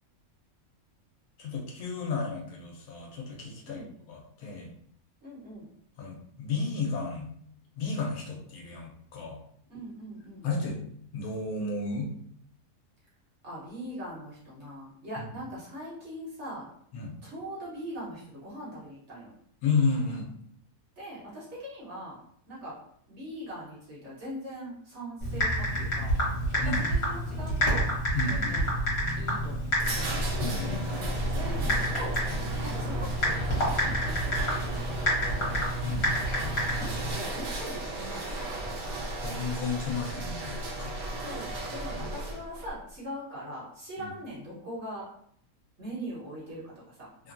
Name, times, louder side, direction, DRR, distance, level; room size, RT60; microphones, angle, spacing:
voice 1, 1.4-3.8 4.1-4.7 6.0-7.3 7.8-9.4 10.4-10.8 11.1-12.1 15.2-15.3 16.9-17.1 19.6-20.3 26.6-26.9 28.1-28.6 30.4-31.0 35.8-36.1 39.2-41.0 41.8-42.1 44.0-44.1 47.2-47.3, left 4 dB, 75° left, 0 dB, 1.1 m, -32 dB
voice 2, 5.2-5.7 9.7-10.5 13.4-16.7 17.2-19.3 21.0-22.2 22.5-22.8 23.1-26.1 26.5-27.9 28.3-28.7 29.2-30.1 31.3-32.2 32.6-34.3 34.6-34.8 35.2-35.6 36.8-38.5 41.1-45.1 45.8-47.1, equal, 55° right, -7 dB, 1.3 m, -41 dB
Typing, 25.2-37.1, equal, 50° left, 1.2 m, -29 dB
sound 1, 29.6-42.7, right 1 dB, 85° right, 1.2 m, -35 dB
3.0 x 2.2 x 2.5 m, 0.67 s
omnidirectional pair, 1.6 m